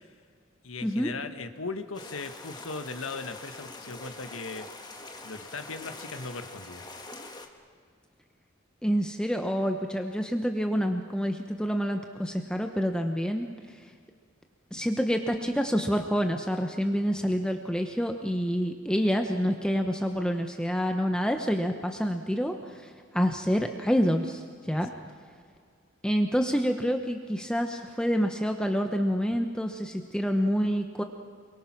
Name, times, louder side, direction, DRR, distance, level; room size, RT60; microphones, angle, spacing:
voice 1, 0.6-4.7 5.2-6.9, left 3 dB, 85° left, 9 dB, 1.5 m, -38 dB
sound 1, 1.9-7.5, left 2 dB, 20° left, 1.8 m, -44 dB
voice 2, 8.8-13.5 13.7-13.8 14.7-24.9 26.0-31.0, equal, 5° left, 4 dB, 1.0 m, -27 dB
28.5 x 23.5 x 6.1 m, 2.1 s
head